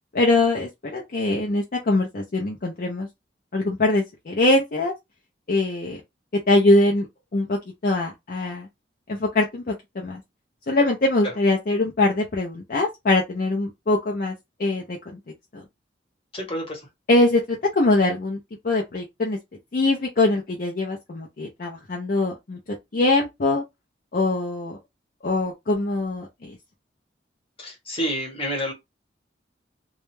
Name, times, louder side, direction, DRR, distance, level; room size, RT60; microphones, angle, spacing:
voice 1, 0.1-3.1 3.5-4.9 5.5-6.0 6.5-7.1 7.3-8.7 9.1-10.2 10.7-14.3 14.6-15.2 15.5-15.6 17.1-18.4 18.6-19.4 19.7-22.6 22.9-23.6 24.1-24.8 25.2-26.6, left 2 dB, 50° left, 0.5 m, -22 dB
voice 2, 16.3-16.9 27.6-28.7, equal, 30° left, 1.0 m, -29 dB
2.3 x 2.1 x 3.0 m
head